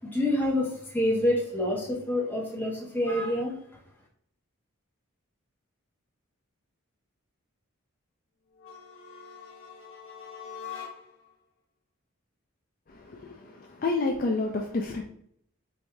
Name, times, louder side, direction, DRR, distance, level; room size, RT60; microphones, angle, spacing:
voice 1, 0.0-3.6, left 1 dB, 10° left, 1.1 m, -27 dB
sound 1, 8.5-11.3, left 7 dB, 65° left, 1.0 m, -43 dB
voice 2, 12.9-15.0, left 3 dB, 40° left, 0.4 m, -30 dB
4.6 x 2.6 x 3.4 m
head